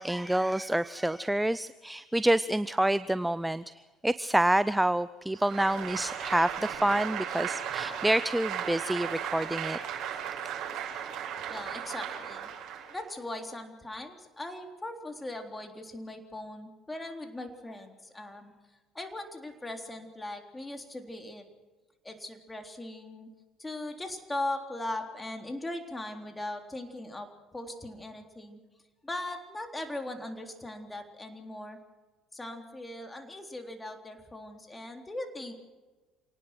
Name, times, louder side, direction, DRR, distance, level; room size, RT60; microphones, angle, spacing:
voice 1, 0.0-9.8, right 1 dB, 5° right, 17 dB, 0.6 m, -28 dB
Applause, 5.4-13.1, right 9 dB, 55° right, 7.3 m, -36 dB
voice 2, 11.5-12.5 12.9-18.5 18.9-21.4 22.0-23.3 23.6-28.6 29.0-31.8 32.3-35.5, left 1 dB, 15° left, 4 dB, 3.8 m, -39 dB
27.5 x 19.0 x 6.2 m, 1.3 s
figure-of-eight pair, 55°, 0 cm